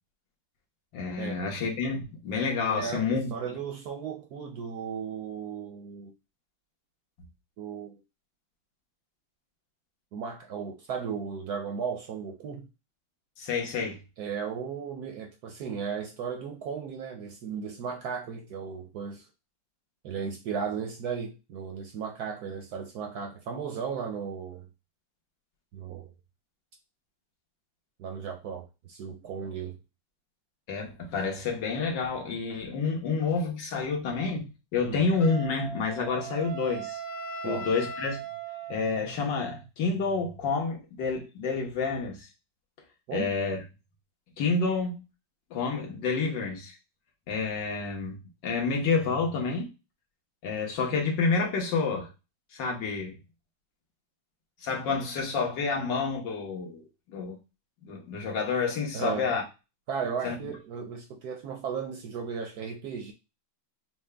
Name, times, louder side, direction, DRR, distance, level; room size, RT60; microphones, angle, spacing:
voice 1, 0.9-3.3 13.4-14.0 30.7-37.0 37.4-38.2 38.7-42.3 43.1-43.6 44.4-45.0 45.5-46.8 47.3-48.2 48.4-49.7 50.4-52.1 52.5-53.2 54.6-57.4 57.8-59.4 60.2-60.4, left 4 dB, 70° left, 1.8 m, -29 dB
voice 2, 2.7-6.1 7.6-8.0 10.1-12.7 14.2-19.3 20.0-24.7 25.7-26.1 28.0-29.8 34.8-35.0 37.4-37.7 43.1-43.3 58.9-59.3 59.9-63.1, right 6 dB, 70° right, 1.0 m, -35 dB
Wind instrument woodwind instrument, 35.2-39.2, right 4 dB, 55° left, 0.5 m, -38 dB
6.1 x 2.3 x 3.3 m
omnidirectional pair, 2.1 m